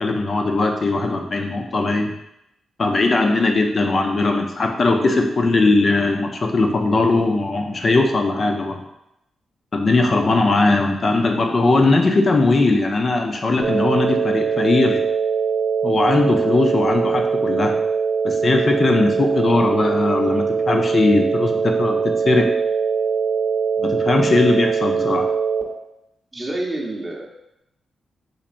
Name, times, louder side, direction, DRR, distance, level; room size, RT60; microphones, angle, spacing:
voice 1, 0.0-2.1 2.8-8.8 9.7-15.0 15.8-17.7 18.2-22.5 23.8-25.3, left 2 dB, 50° left, 3 dB, 0.6 m, -19 dB
sound 1, 13.6-25.6, right 5 dB, 50° right, 0.9 m, -22 dB
voice 2, 26.3-27.2, right 2 dB, 25° right, 1 dB, 0.8 m, -27 dB
4.0 x 3.1 x 2.6 m, 0.84 s
supercardioid pair, 45°, 0 cm